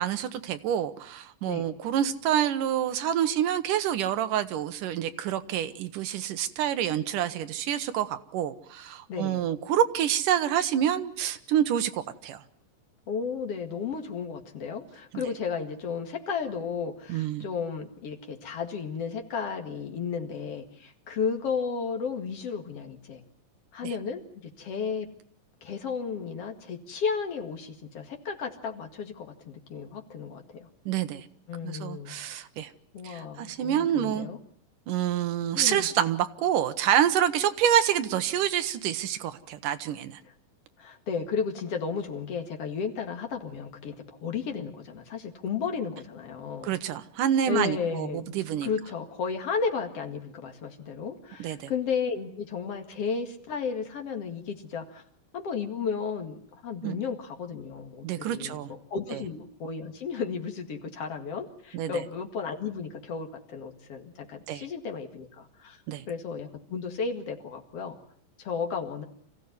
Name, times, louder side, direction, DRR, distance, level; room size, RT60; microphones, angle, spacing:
voice 1, 0.0-12.4 17.1-17.5 23.8-23.9 30.9-31.3 31.6-32.7 33.0-34.3 34.9-40.2 46.6-48.7 51.4-51.7 56.8-57.0 58.0-58.7 59.1-59.2 61.7-62.0 64.5-64.7 65.9-66.0, right 10 dB, 70° right, 10 dB, 2.5 m, -27 dB
voice 2, 9.1-9.4 13.1-23.2 23.7-25.1 25.6-30.7 31.5-32.1 32.9-34.4 35.5-35.9 40.8-46.7 47.5-48.3 48.6-55.0 55.3-65.8 66.1-68.0 68.4-69.0, left 5 dB, 50° left, 3 dB, 2.7 m, -33 dB
26.5 x 15.5 x 9.6 m, 0.65 s
omnidirectional pair, 4.0 m